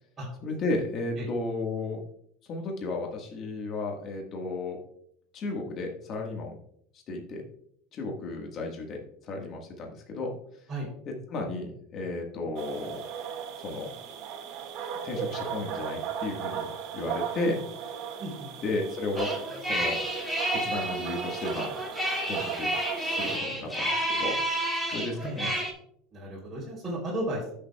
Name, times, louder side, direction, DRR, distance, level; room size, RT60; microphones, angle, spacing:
voice 1, 0.4-2.0 2.5-4.8 5.3-6.6 7.1-7.4 7.9-10.3 11.0-13.0 13.6-13.9 15.0-16.7 16.9-17.9 18.6-20.0 20.5-21.7 22.3-22.7 22.9-24.4 24.9-25.5, left 2 dB, 35° left, 1 dB, 1.5 m, -33 dB
sound 1, 12.6-23.4, right 8 dB, 50° right, 1.7 m, -36 dB
sound 2, 19.2-25.7, right 1 dB, 5° left, 2.1 m, -30 dB
voice 2, 26.1-27.5, right 1 dB, 15° right, -7 dB, 3.2 m, -34 dB
14.0 x 6.8 x 2.3 m, 0.69 s
supercardioid pair, 145°, 0 cm